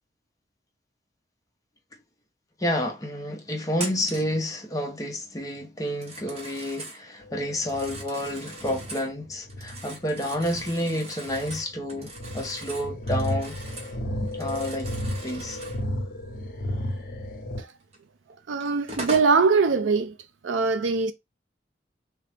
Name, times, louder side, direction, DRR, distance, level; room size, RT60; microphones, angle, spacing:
voice 1, 2.6-13.6 14.3-14.9 15.2-15.6, left 1 dB, 20° left, 0.6 m, -30 dB
Telephone, 3.7-4.4 5.9-7.0 7.5-9.1 9.5-14.0 14.3-15.8 17.9-18.0 18.6-19.4, right 2 dB, 35° right, 0.9 m, -40 dB
sound 1, 7.2-17.6, left 1 dB, 50° left, 0.8 m, -34 dB
voice 2, 18.5-20.2 20.4-21.1, right 4 dB, 90° right, 0.5 m, -22 dB
3.8 x 2.1 x 3.3 m
head